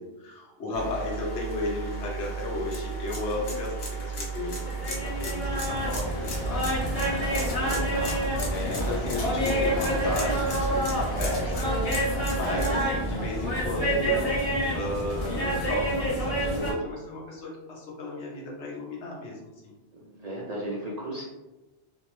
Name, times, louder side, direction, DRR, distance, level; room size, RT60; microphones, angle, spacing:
voice 1, 0.0-3.7 4.0-6.7 8.5-11.7 12.0-19.7, left 2 dB, 85° left, -3 dB, 1.1 m, -34 dB
sound 1, 0.7-12.8, right 3 dB, 70° left, 0.9 m, -34 dB
sound 2, 4.7-16.7, equal, 40° left, 0.7 m, -28 dB
voice 2, 7.2-8.2 20.0-21.2, right 1 dB, 55° right, -4 dB, 0.4 m, -36 dB
2.7 x 2.0 x 3.0 m, 1.1 s
omnidirectional pair, 1.1 m